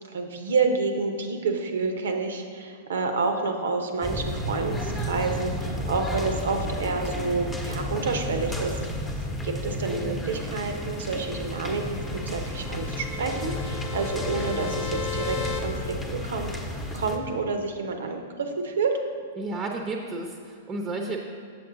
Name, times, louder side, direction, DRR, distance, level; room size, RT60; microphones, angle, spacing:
voice 1, 0.1-8.8 9.4-11.8 12.2-16.6 16.9-19.0, right 4 dB, 75° right, 5 dB, 0.8 m, -29 dB
sound 1, 4.0-17.2, left 1 dB, 10° left, 1.0 m, -32 dB
sound 2, 10.7-15.6, left 8 dB, 45° left, 0.8 m, -37 dB
voice 2, 19.4-21.2, right 2 dB, 25° right, 2 dB, 0.8 m, -32 dB
7.3 x 7.0 x 3.9 m, 2.3 s
hypercardioid pair, 110°, 0 cm